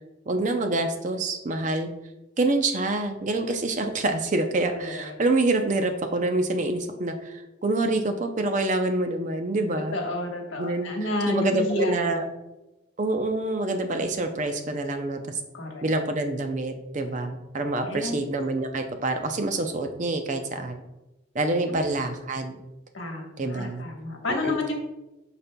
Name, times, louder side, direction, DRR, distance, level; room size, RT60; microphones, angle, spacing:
voice 1, 0.3-1.9 2.4-10.0 10.6-10.9 11.3-12.2 13.0-15.4 15.8-20.8 21.3-22.6 23.4-23.8 24.4-24.6, right 2 dB, 40° right, 6 dB, 0.5 m, -26 dB
voice 2, 4.7-5.2 9.9-12.2 15.5-15.8 17.8-18.2 21.7-21.8 22.9-24.7, left 2 dB, 75° left, 1 dB, 1.2 m, -30 dB
12.0 x 4.2 x 2.2 m, 1.0 s
head